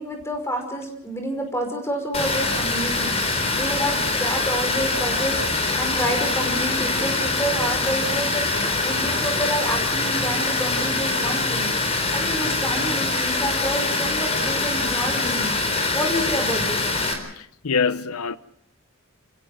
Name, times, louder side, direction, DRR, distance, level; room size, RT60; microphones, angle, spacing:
voice 1, 0.0-3.2 3.6-8.4 8.8-11.7 12.1-15.6 15.9-16.8, equal, 10° left, 5.5 m, -28 dB
Water, 2.1-17.1, left 3 dB, 30° left, 4.3 m, -24 dB
voice 2, 17.4-18.4, left 5 dB, 85° left, 0.8 m, -24 dB
30.0 x 16.5 x 6.5 m
head